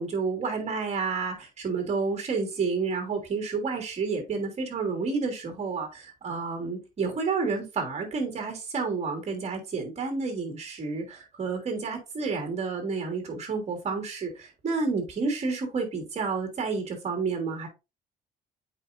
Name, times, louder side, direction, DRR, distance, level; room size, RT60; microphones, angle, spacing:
voice 1, 0.0-17.7, right 4 dB, 40° right, 3.1 m, -30 dB
8.2 x 4.9 x 2.7 m
cardioid pair, 110°, 17 cm